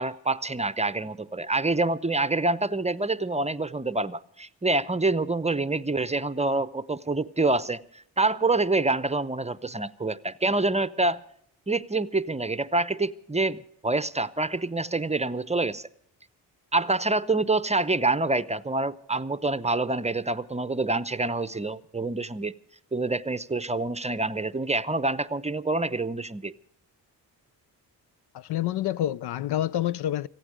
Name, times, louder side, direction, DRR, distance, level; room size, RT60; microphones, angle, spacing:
voice 1, 0.0-11.2 11.7-15.9 16.7-22.5 22.9-26.5, right 2 dB, 15° right, 0.7 m, -26 dB
voice 2, 28.3-30.3, left 12 dB, 60° left, 0.5 m, -27 dB
27.5 x 9.2 x 5.0 m
supercardioid pair, 50°, 45 cm